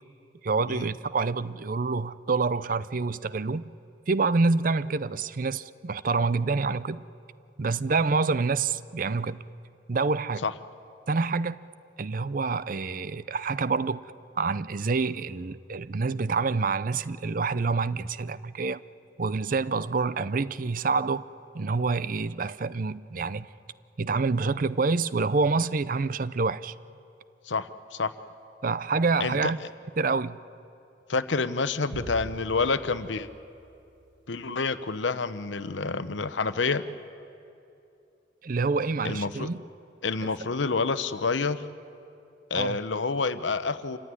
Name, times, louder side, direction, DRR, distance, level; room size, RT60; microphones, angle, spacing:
voice 1, 0.4-3.7 4.1-7.0 7.6-9.4 9.9-10.4 11.1-11.7 12.0-14.0 14.4-18.8 19.2-21.3 21.5-23.5 24.0-26.7 28.6-29.6 30.0-30.4 38.4-39.6 42.5-42.8, right 4 dB, 50° right, 0.5 m, -27 dB
voice 2, 27.5-28.1 29.2-29.5 31.1-33.3 34.3-36.8 39.0-39.5 40.0-41.6 42.5-44.0, left 4 dB, 80° left, 0.9 m, -28 dB
sound 1, 31.9-34.4, right 1 dB, 85° right, 1.6 m, -43 dB
27.5 x 15.5 x 9.8 m
head